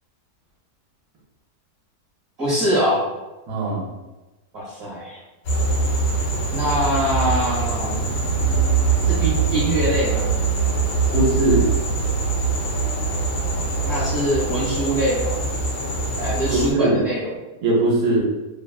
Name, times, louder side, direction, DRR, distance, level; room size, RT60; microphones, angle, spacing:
voice 1, 2.4-3.0 4.5-5.2 6.5-8.1 9.1-10.3 13.8-15.4 16.2-17.3, equal, 50° right, -8 dB, 1.0 m, -23 dB
voice 2, 3.5-3.9 11.1-11.7 16.5-17.0 17.6-18.2, right 1 dB, 85° right, -4 dB, 1.2 m, -20 dB
sound 1, 5.5-16.7, right 4 dB, 65° left, 1.3 m, -23 dB
3.0 x 2.1 x 2.3 m, 1.1 s
omnidirectional pair, 1.7 m